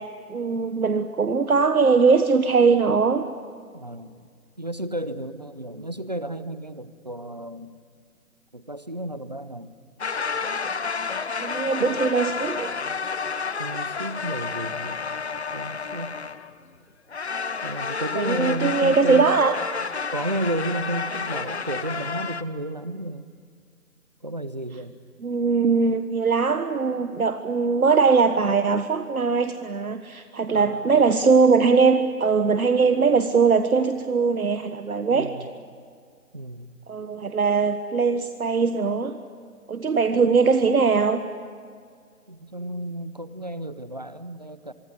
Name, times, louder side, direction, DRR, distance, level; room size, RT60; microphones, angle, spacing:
voice 1, 0.0-3.2 11.4-12.7 18.1-19.6 25.2-35.3 36.9-39.2 39.7-41.2, right 5 dB, 65° right, 8 dB, 1.5 m, -21 dB
voice 2, 3.7-4.3 4.6-7.8 8.5-9.7 10.4-10.5 11.8-12.1 13.6-15.0 15.5-16.2 17.6-19.4 20.1-23.3 24.2-25.0 30.5-31.0 35.1-35.5 36.3-37.1 40.1-40.4 42.3-44.7, right 1 dB, 30° right, 14 dB, 0.7 m, -33 dB
sound 1, 10.0-16.5 17.1-22.4, left 5 dB, 45° left, 1.1 m, -30 dB
25.0 x 24.0 x 9.8 m, 2.1 s
figure-of-eight pair, 165°, 46 cm